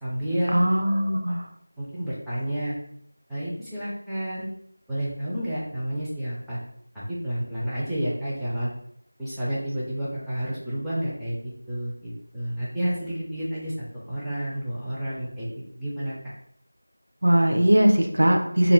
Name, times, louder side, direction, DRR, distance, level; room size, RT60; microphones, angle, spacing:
voice 1, 0.0-1.3 1.8-2.8 3.3-4.5 4.9-6.6 7.1-8.7 9.2-11.4 11.7-16.1, equal, ahead, -15 dB, 0.4 m, -30 dB
voice 2, 0.5-1.5 17.2-18.7, equal, 65° right, 3 dB, 0.4 m, -20 dB
2.2 x 2.0 x 3.5 m, 0.69 s
figure-of-eight pair, 175°, 0 cm